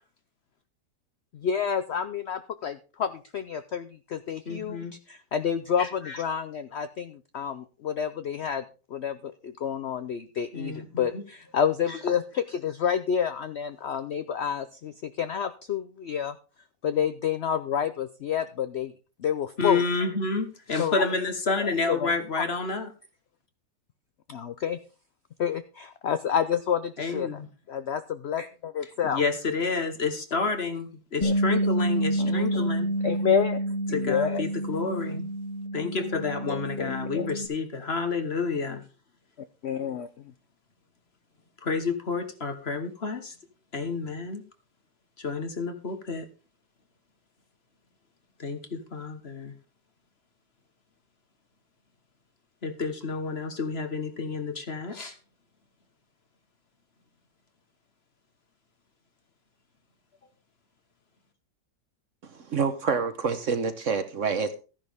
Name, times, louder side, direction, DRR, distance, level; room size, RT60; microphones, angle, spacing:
voice 1, 1.3-8.6 8.9-16.4 16.8-18.9 19.2-19.8 20.8-21.0 21.6-22.1 24.3-24.8 25.4-27.3 27.7-29.2 31.2-31.3 32.2-32.7 33.0-33.6 33.9-34.4 36.5-37.3 39.6-40.3, left 7 dB, 70° left, 0.6 m, -29 dB
voice 2, 4.5-4.9 10.5-11.2 19.6-22.9 27.0-27.5 29.0-32.9 33.9-35.2 35.7-38.8 41.6-43.3 43.7-44.4 45.2-46.3 48.4-49.5 52.6-55.2, left 4 dB, 40° left, 1.4 m, -30 dB
Bass guitar, 31.2-37.5, right 1 dB, 25° left, 1.6 m, -28 dB
voice 3, 62.2-64.5, right 5 dB, 50° right, 1.2 m, -27 dB
13.5 x 10.5 x 3.5 m
omnidirectional pair, 1.9 m